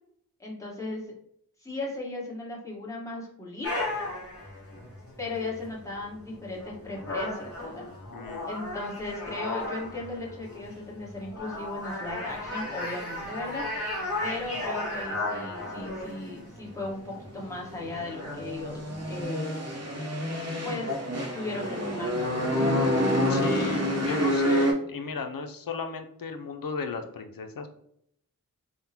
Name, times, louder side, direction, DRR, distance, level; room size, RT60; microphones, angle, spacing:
voice 1, 0.4-1.1 1.6-3.9 5.2-7.9 8.5-13.7 14.2-19.6 20.6-20.9 21.3-22.5, left 2 dB, 10° left, -4 dB, 1.2 m, -36 dB
sound 1, 3.6-19.2, left 2 dB, 40° left, 1.4 m, -36 dB
voice 2, 8.1-8.5 23.3-27.7, left 3 dB, 70° left, 6 dB, 0.5 m, -35 dB
sound 2, 17.2-24.7, equal, 45° right, 0.8 m, -28 dB
3.6 x 2.1 x 2.8 m, 0.70 s
wide cardioid pair, 40°, 36 cm